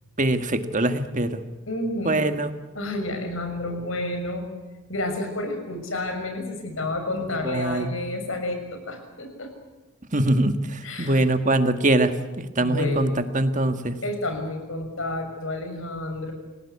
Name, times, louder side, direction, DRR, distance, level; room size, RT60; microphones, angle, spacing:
voice 1, 0.2-1.4 2.1-2.5 7.5-7.9 10.1-10.6 11.0-12.1 12.4-13.1 13.3-13.9, right 1 dB, 35° right, 9 dB, 1.7 m, -22 dB
voice 2, 1.7-2.3 2.7-4.5 4.9-9.5 10.8-11.2 12.6-13.1 14.0-16.3, left 1 dB, 75° left, 5 dB, 6.5 m, -30 dB
28.5 x 17.5 x 8.4 m, 1.2 s
head